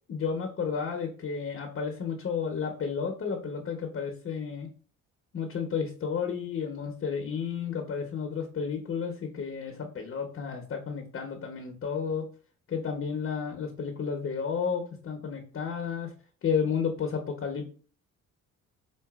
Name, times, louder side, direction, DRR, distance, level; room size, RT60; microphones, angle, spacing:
voice 1, 0.1-4.7 5.3-12.2 12.7-16.1 16.4-17.6, left 6 dB, 45° left, 3 dB, 0.8 m, -32 dB
4.7 x 2.5 x 2.3 m, 0.40 s
cardioid pair, 90°, 30 cm